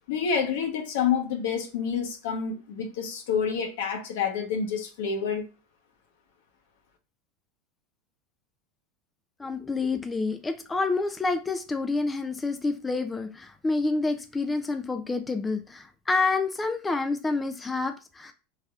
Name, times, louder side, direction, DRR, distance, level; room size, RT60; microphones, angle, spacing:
voice 1, 0.1-5.5, left 6 dB, 75° left, 0.9 m, -28 dB
voice 2, 9.4-18.3, left 3 dB, 15° left, 0.3 m, -28 dB
4.1 x 3.4 x 2.4 m
supercardioid pair, 115°, 0 cm